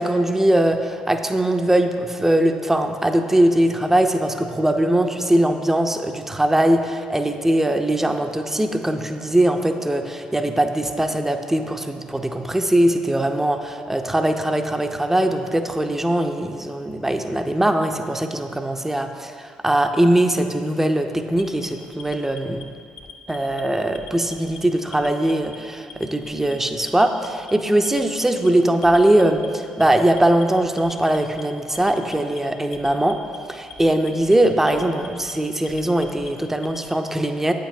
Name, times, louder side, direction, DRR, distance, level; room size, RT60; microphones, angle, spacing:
voice 1, 0.0-22.7 23.3-33.2 33.5-37.5, right 1 dB, 10° right, 6 dB, 0.5 m, -21 dB
Alarm, 21.3-22.6 23.0-23.6 23.9-24.6 24.9-25.6 25.9-26.5 26.9-27.5 27.9-28.5 28.8-29.5 29.8-30.4 30.8-31.4 31.8-32.4 32.7-33.4 33.7-34.3 34.7-35.3 35.7-36.8, left 5 dB, 55° left, 0.7 m, -41 dB
8.4 x 5.2 x 2.7 m, 2.2 s
hypercardioid pair, 45°, 3 cm